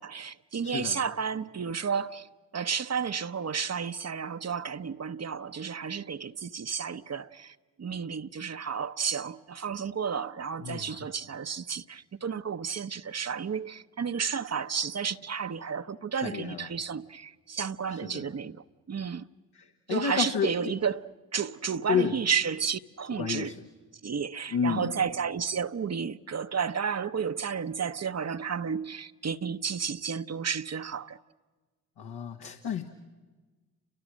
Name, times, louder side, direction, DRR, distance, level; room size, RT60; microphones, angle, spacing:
voice 1, 0.0-19.2 19.9-23.5 24.0-31.2, right 6 dB, 40° right, 0.9 m, -32 dB
voice 2, 0.6-1.0 10.6-11.0 16.2-16.7 17.9-18.3 19.5-20.7 21.9-22.1 23.2-23.6 24.5-25.0 32.0-32.8, left 7 dB, 70° left, 1.7 m, -31 dB
30.0 x 25.5 x 6.4 m
hypercardioid pair, 40°, 40 cm